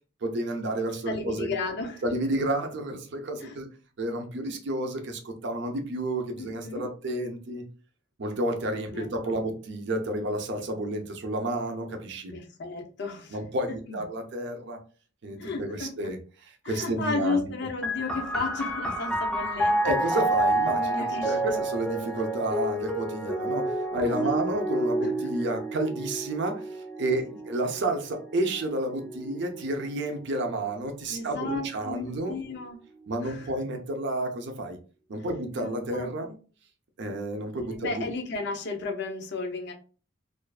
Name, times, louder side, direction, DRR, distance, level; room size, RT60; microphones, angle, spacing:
voice 1, 0.2-1.5 2.0-3.7 4.0-7.6 8.2-12.4 13.3-14.8 15.2-17.5 19.8-32.3 33.1-34.8 35.1-36.3 37.0-38.1, right 1 dB, 55° right, 5 dB, 0.5 m, -31 dB
voice 2, 1.1-2.0 3.4-3.5 6.4-6.9 8.9-9.4 12.3-13.4 13.9-14.0 15.4-15.9 16.6-19.8 20.6-21.7 23.9-24.4 25.0-25.1 31.1-32.8 33.2-33.5 35.6-36.4 37.5-39.7, left 3 dB, 55° left, 3 dB, 0.5 m, -34 dB
sound 1, 17.8-31.1 31.9-32.7, right 1 dB, 5° left, 0.3 m, -30 dB
2.4 x 2.3 x 2.3 m, 0.38 s
head